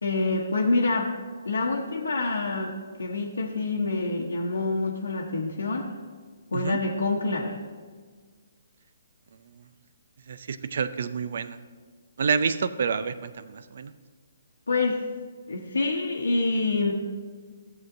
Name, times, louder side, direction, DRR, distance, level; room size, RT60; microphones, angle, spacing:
voice 1, 0.0-1.1 1.4-2.7 3.0-5.9 6.5-7.6 14.7-15.0 15.5-16.9, left 3 dB, 75° left, -3 dB, 1.0 m, -26 dB
voice 2, 10.3-11.6 12.2-13.9, right 6 dB, 60° right, 13 dB, 0.5 m, -28 dB
14.0 x 7.7 x 2.6 m, 1.6 s
figure-of-eight pair, 135°, 0 cm